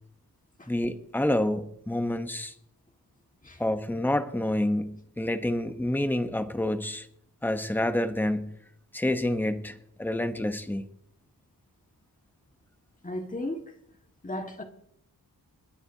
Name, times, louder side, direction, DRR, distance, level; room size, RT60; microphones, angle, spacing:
voice 1, 0.7-2.5 3.6-7.1 7.4-8.6 8.9-10.8, left 1 dB, 5° left, 0.8 m, -28 dB
voice 2, 13.0-13.6 14.2-14.6, left 1 dB, 20° left, 1.6 m, -34 dB
28.5 x 9.9 x 2.7 m
wide cardioid pair, 140°, 38 cm